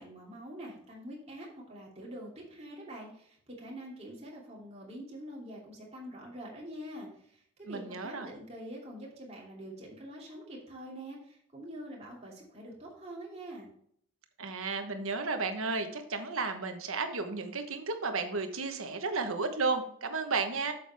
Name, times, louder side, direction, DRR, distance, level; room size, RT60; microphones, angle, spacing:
voice 1, 0.0-13.7, right 1 dB, 30° right, -3 dB, 2.7 m, -45 dB
voice 2, 7.7-8.3 14.4-20.7, right 4 dB, 75° right, 7 dB, 1.2 m, -33 dB
8.8 x 7.0 x 3.5 m, 0.66 s
head